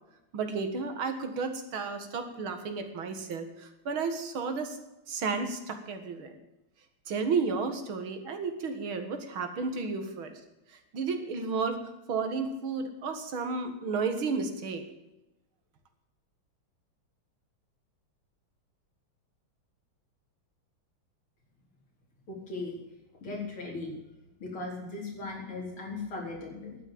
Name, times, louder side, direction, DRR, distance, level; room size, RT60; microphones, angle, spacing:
voice 1, 0.3-4.8 5.1-6.4 7.1-10.3 10.9-11.8 12.1-14.8, right 4 dB, 70° right, 7 dB, 2.4 m, -32 dB
voice 2, 22.3-22.8 23.2-23.9 24.4-26.8, left 3 dB, 80° left, -1 dB, 4.9 m, -38 dB
11.5 x 9.5 x 8.6 m, 0.95 s
omnidirectional pair, 2.3 m